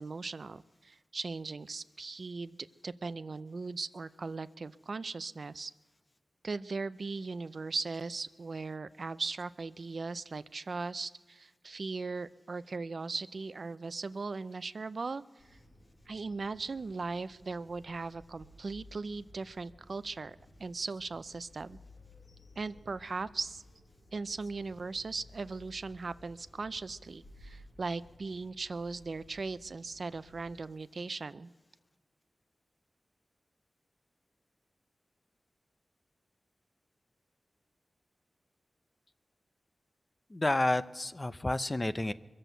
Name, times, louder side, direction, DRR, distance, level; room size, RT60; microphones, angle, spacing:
voice 1, 0.0-2.6 2.8-5.7 6.4-15.2 15.5-15.6 16.1-21.8 22.6-23.6 24.1-31.5, right 4 dB, 65° right, 14 dB, 0.4 m, -38 dB
sound 1, 15.4-30.6, left 1 dB, 60° left, 4.8 m, -57 dB
voice 2, 40.3-42.1, left 1 dB, 30° left, 13 dB, 0.6 m, -30 dB
22.5 x 7.6 x 8.0 m, 1.3 s
wide cardioid pair, 60°, 0 cm